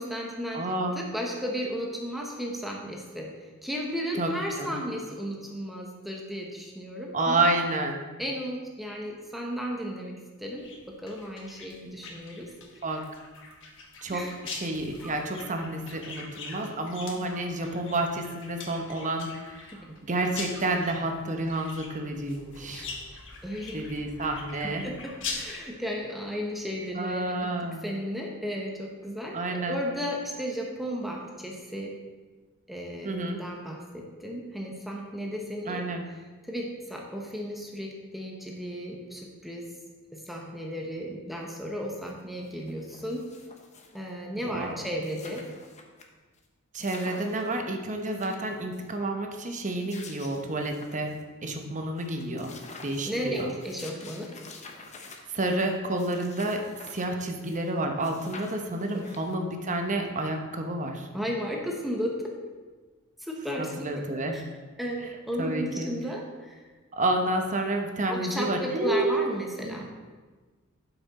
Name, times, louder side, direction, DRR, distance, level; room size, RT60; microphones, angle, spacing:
voice 1, 0.0-0.6 0.9-7.4 8.2-12.5 14.1-14.3 19.7-19.9 23.4-23.8 24.8-27.5 27.8-31.9 32.7-35.8 36.4-39.7 40.1-43.3 43.9-45.4 53.1-54.3 58.9-59.2 61.1-62.2 63.2-64.0 64.3-64.4 64.8-66.6 68.1-69.9, equal, ahead, -1 dB, 0.9 m, -34 dB
voice 2, 0.5-1.0 4.2-4.3 4.6-4.8 7.1-8.0 12.8-13.2 14.0-22.9 23.7-24.9 26.9-27.9 29.3-29.8 33.0-33.4 35.6-36.1 44.4-44.8 46.7-52.5 52.8-53.5 55.3-56.6 56.9-61.1 63.6-64.4 65.4-65.9 66.9-69.3 69.6-69.8, right 2 dB, 35° right, 4 dB, 0.9 m, -30 dB
sound 1, 10.6-25.6, left 4 dB, 60° left, 1.2 m, -43 dB
sound 2, 42.1-42.2 42.4-44.1 44.5-44.6 44.8-46.0 46.4-46.5 46.8-47.6 48.0-48.9 49.6-51.2 51.6-51.7 52.0-57.7 58.0-59.5, left 3 dB, 30° left, 0.9 m, -48 dB
11.5 x 6.0 x 4.1 m, 1.3 s
head